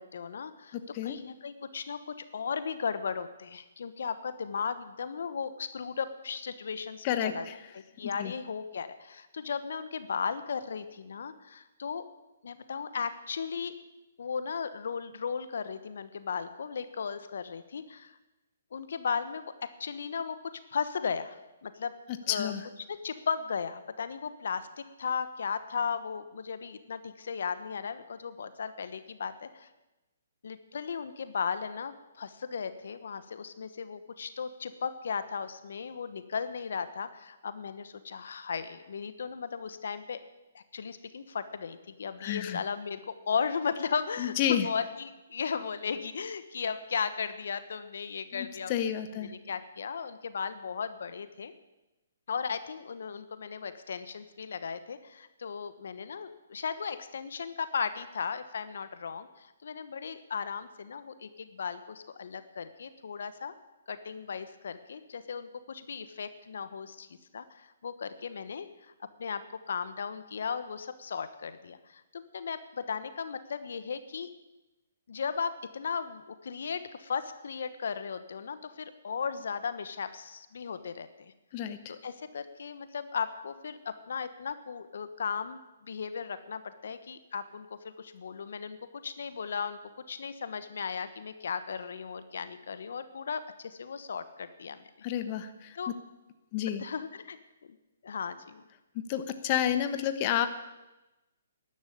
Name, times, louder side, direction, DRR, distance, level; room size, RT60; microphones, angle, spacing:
voice 1, 0.0-0.8 1.0-7.5 7.7-12.0 12.4-13.7 14.2-18.2 18.7-20.4 20.7-21.9 22.2-22.5 22.9-29.7 30.4-40.2 40.5-48.7 49.2-51.5 52.3-63.5 63.9-67.1 67.3-68.9 69.2-69.4 69.7-74.3 75.1-81.1 81.9-89.8 90.1-94.9 95.7-95.9 96.8-97.4 98.0-98.6, left 6 dB, 70° left, 12 dB, 1.2 m, -36 dB
voice 2, 0.7-1.2 7.0-7.6 8.2-8.3 22.3-22.6 42.2-42.6 44.2-44.7 48.3-49.3 81.5-81.9 95.0-95.9 96.5-96.8 98.9-100.5, left 10 dB, 35° left, 10 dB, 1.1 m, -30 dB
12.5 x 11.0 x 8.7 m, 1.0 s
hypercardioid pair, 140°, 0 cm